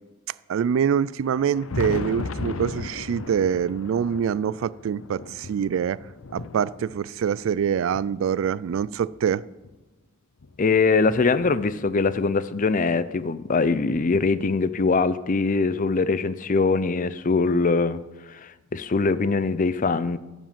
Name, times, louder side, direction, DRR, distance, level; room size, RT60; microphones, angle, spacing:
voice 1, 0.5-6.0 6.3-9.4, right 8 dB, 70° right, 0.3 m, -25 dB
Thunder, 1.2-9.8 10.4-12.1 13.3-13.4 13.9-14.0 15.9-16.0 17.3-17.4 19.0-19.1, left 3 dB, 85° left, 0.7 m, -37 dB
voice 2, 10.6-20.2, left 4 dB, 40° left, 0.5 m, -22 dB
15.0 x 5.1 x 7.3 m
head